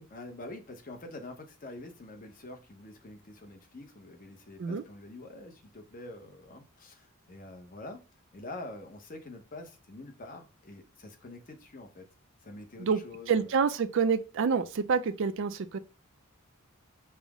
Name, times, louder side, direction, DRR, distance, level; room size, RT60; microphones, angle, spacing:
voice 1, 0.1-8.0 8.3-12.1 12.4-13.5, left 2 dB, 35° left, 0.7 m, -46 dB
voice 2, 13.3-15.8, right 6 dB, 55° right, 0.4 m, -27 dB
5.4 x 2.0 x 4.7 m
head